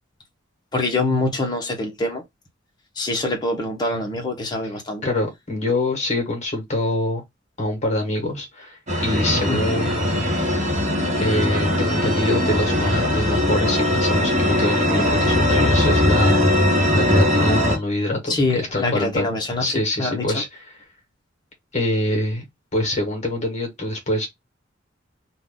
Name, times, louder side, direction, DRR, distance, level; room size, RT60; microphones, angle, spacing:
voice 1, 0.7-2.2 3.0-5.1 9.5-9.6 18.3-20.4, left 2 dB, 25° left, 1.1 m, -24 dB
voice 2, 5.0-7.2 7.6-10.4 11.2-16.4 16.9-19.3 19.6-20.5 21.7-22.4 22.7-24.3, left 1 dB, 40° left, 1.4 m, -25 dB
sound 1, 8.9-17.8, left 1 dB, 40° right, 1.3 m, -20 dB
2.8 x 2.6 x 3.6 m
head